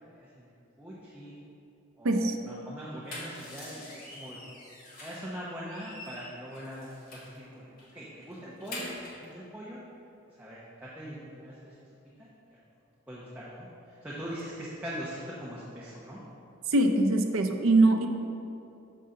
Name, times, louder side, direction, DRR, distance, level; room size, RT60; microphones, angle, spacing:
voice 1, 0.1-0.5 0.8-1.4 2.0-4.4 5.0-9.8 10.3-11.7 12.2-12.6 13.1-16.2, equal, 10° right, -8 dB, 0.7 m, -42 dB
voice 2, 2.0-2.4 16.7-18.1, right 2 dB, 75° right, 5 dB, 0.5 m, -22 dB
sound 1, 2.8-5.3 5.7-7.4 7.8-7.9 8.2-9.3, left 1 dB, 45° left, 1.6 m, -45 dB
6.6 x 5.6 x 3.8 m, 2.8 s
head